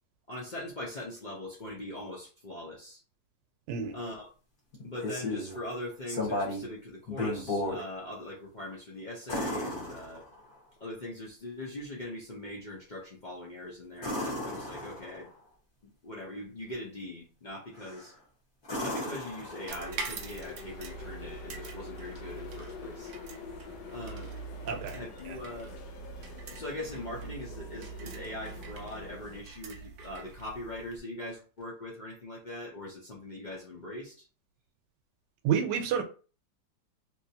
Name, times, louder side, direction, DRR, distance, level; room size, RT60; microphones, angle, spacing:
voice 1, 0.3-3.0 3.9-4.3 4.8-10.2 10.8-15.3 15.8-18.1 18.8-23.1 23.9-24.3 24.9-25.7 26.5-34.3, left 1 dB, 60° left, 0.5 m, -41 dB
sound 1, 4.7-5.6 6.1-6.7 7.1-7.8 9.3-10.5 14.0-15.3 17.8-18.1 18.6-20.0 22.2-22.3, left 1 dB, 35° left, 1.1 m, -34 dB
sound 2, 18.7-29.4, left 6 dB, 85° left, 1.3 m, -47 dB
sound 3, 19.7-31.0, right 5 dB, 65° right, 0.7 m, -44 dB
voice 2, 24.6-25.0 25.2-25.4 35.4-36.0, right 7 dB, 85° right, 1.3 m, -29 dB
3.0 x 2.7 x 2.7 m
omnidirectional pair, 1.9 m